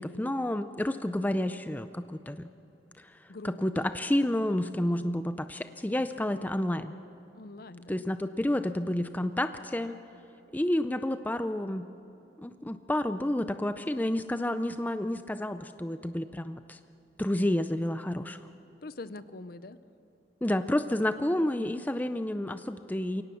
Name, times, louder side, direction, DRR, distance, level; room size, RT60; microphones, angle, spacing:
voice 1, 0.0-2.5 3.0-3.2 3.4-6.9 7.9-9.9 10.5-11.9 12.4-16.8 17.2-18.4 20.4-23.2, left 1 dB, 10° left, 10 dB, 0.4 m, -30 dB
voice 2, 3.3-3.9 4.9-5.2 7.3-8.0 18.8-19.8, left 2 dB, 55° left, 14 dB, 0.7 m, -44 dB
23.0 x 17.5 x 7.0 m, 3.0 s
head